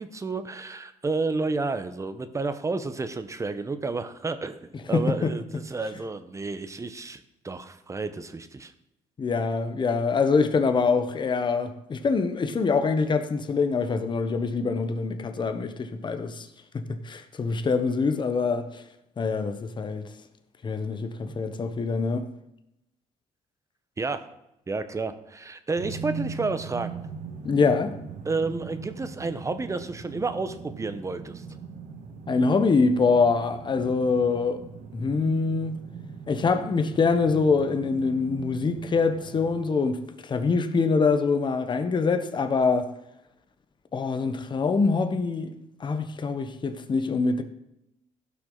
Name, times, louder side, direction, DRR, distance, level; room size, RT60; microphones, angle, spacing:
voice 1, 0.0-8.7 24.0-24.2 24.7-27.0 28.2-31.4, right 3 dB, 20° right, 0.9 m, -31 dB
voice 2, 4.9-5.3 9.2-16.5 16.7-18.8 19.2-20.1 20.6-22.3 27.4-28.0 32.3-34.6 34.9-35.8 36.3-42.9 43.9-45.5 45.8-47.4, left 4 dB, 35° left, 1.0 m, -24 dB
Denver Sculpture Pegasus, 25.8-39.6, right 6 dB, 70° right, 1.6 m, -40 dB
16.0 x 6.0 x 3.9 m
cardioid pair, 100°, 13 cm